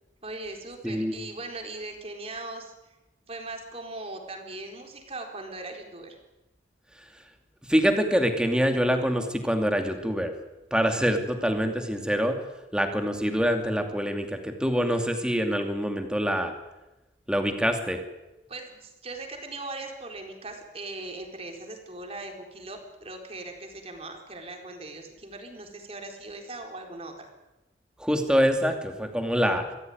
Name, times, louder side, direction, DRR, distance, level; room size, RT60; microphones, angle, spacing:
voice 1, 0.2-2.9 3.3-6.2 18.5-27.3, right 2 dB, 35° right, 3 dB, 4.1 m, -39 dB
voice 2, 7.7-10.3 10.7-12.4 12.7-16.5 17.3-18.0 28.0-29.7, equal, 5° right, 5 dB, 2.6 m, -25 dB
24.5 x 16.0 x 9.5 m, 1.0 s
head